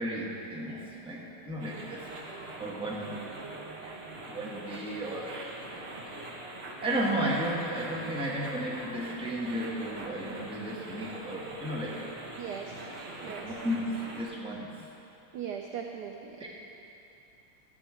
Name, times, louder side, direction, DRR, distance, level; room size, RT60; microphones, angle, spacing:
voice 1, 0.0-3.1 4.3-5.8 6.8-12.0 13.2-14.9 16.4-16.5, right 1 dB, 5° right, -5 dB, 0.9 m, -34 dB
sound 1, 1.6-14.2, right 2 dB, 45° right, 0.9 m, -43 dB
voice 2, 12.4-12.7 13.2-13.5 15.3-16.5, right 7 dB, 80° right, 2 dB, 0.9 m, -39 dB
12.5 x 7.9 x 4.9 m, 2.9 s
omnidirectional pair, 2.4 m